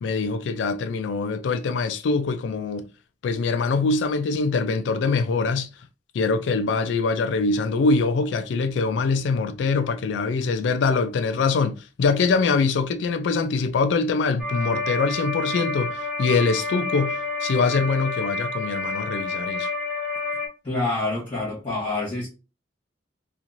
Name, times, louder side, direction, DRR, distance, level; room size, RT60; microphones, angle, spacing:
voice 1, 0.0-2.9 3.2-5.7 6.1-19.7, left 4 dB, 70° left, 0.3 m, -23 dB
sound 1, 14.4-20.5, left 2 dB, ahead, 0.7 m, -29 dB
voice 2, 20.6-22.3, left 2 dB, 30° left, 1.2 m, -27 dB
2.9 x 2.4 x 2.5 m
head